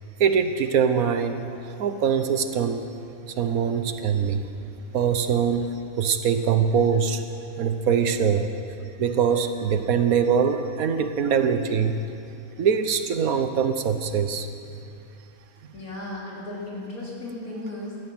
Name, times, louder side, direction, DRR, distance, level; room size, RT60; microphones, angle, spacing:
voice 1, 0.2-2.9 3.3-4.5 4.9-5.7 6.0-7.2 7.6-8.5 9.0-12.0 12.6-14.5, right 7 dB, 80° right, 9 dB, 1.4 m, -23 dB
voice 2, 15.7-18.0, left 2 dB, 80° left, -5 dB, 3.9 m, -35 dB
16.5 x 13.0 x 6.2 m, 2.5 s
omnidirectional pair, 1.5 m